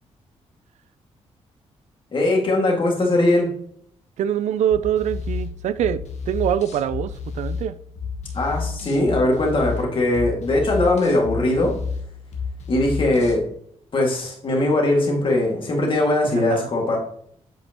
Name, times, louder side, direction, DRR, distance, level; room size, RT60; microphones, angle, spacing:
voice 1, 2.1-3.5 8.3-11.8 12.7-13.5 13.9-17.0, left 2 dB, 45° left, 2.1 m, -20 dB
voice 2, 4.2-7.8 16.3-16.7, right 10 dB, 80° right, 0.4 m, -24 dB
sound 1, 4.7-13.4, left 5 dB, 75° left, 1.2 m, -31 dB
7.5 x 5.2 x 3.0 m
cardioid pair, 85°, 12 cm